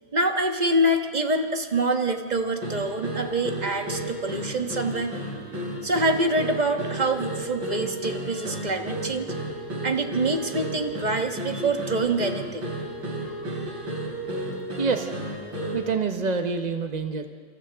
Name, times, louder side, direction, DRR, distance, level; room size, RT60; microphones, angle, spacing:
voice 1, 0.1-5.1 5.8-9.3 9.8-12.6, right 2 dB, 25° right, 5 dB, 1.2 m, -25 dB
sound 1, 2.6-15.9, right 1 dB, 75° right, 4.3 m, -33 dB
voice 2, 14.8-15.1 15.7-17.3, right 4 dB, 50° right, 5 dB, 0.4 m, -27 dB
28.0 x 26.5 x 3.5 m, 2.1 s
omnidirectional pair, 2.1 m